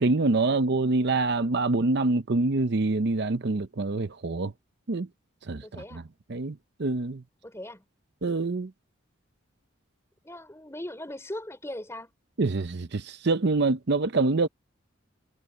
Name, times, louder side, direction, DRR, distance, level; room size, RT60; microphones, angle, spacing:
voice 1, 0.0-4.5 4.9-5.1 5.5-6.0 6.3-7.2 8.2-8.7 12.4-14.5, right 3 dB, 55° right, 0.7 m, -25 dB
voice 2, 5.6-6.1 7.4-7.8 10.2-12.1, left 1 dB, 15° left, 4.2 m, -39 dB
head